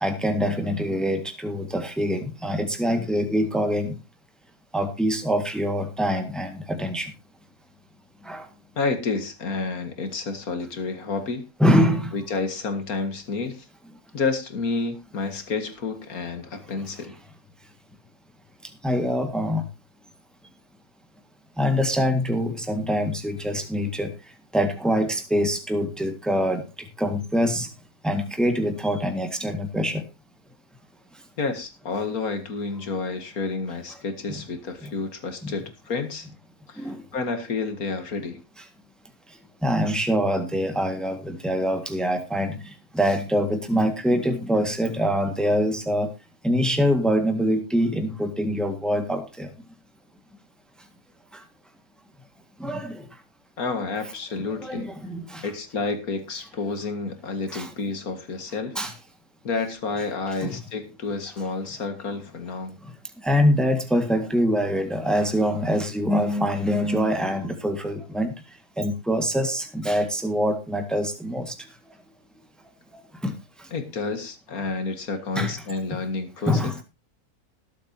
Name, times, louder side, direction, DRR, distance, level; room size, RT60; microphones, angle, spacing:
voice 1, 0.0-4.0 4.7-7.1 8.3-8.4 11.6-12.1 18.8-19.6 21.6-24.1 24.5-26.6 27.0-27.7 28.0-30.0 34.3-34.4 34.8-34.9 36.8-37.0 39.6-42.6 42.9-46.1 46.4-49.5 52.6-52.9 54.6-55.4 57.5-57.7 58.7-58.9 60.4-60.6 63.2-68.3 68.8-71.5 73.2-73.3 75.3-75.5 76.5-76.7, equal, ahead, 7 dB, 1.7 m, -24 dB
voice 2, 8.8-11.5 12.1-13.7 14.1-17.1 31.4-36.3 36.7-38.4 53.6-54.9 55.4-58.8 59.4-62.8 73.7-76.7, left 4 dB, 70° left, 9 dB, 2.2 m, -30 dB
20.0 x 8.4 x 2.8 m, 0.26 s
omnidirectional pair, 1.6 m